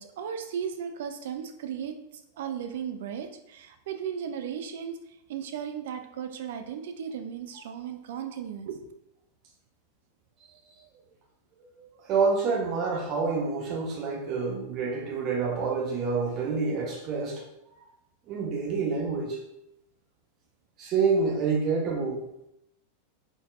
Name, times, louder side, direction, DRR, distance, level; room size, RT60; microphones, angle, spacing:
voice 1, 0.0-2.0 2.4-5.0 5.3-8.8, right 8 dB, 55° right, 7 dB, 0.4 m, -35 dB
voice 2, 12.1-17.4 18.3-19.4 20.8-22.2, right 4 dB, 35° right, -2 dB, 0.9 m, -27 dB
4.0 x 3.8 x 2.4 m, 0.83 s
figure-of-eight pair, 90°, 0 cm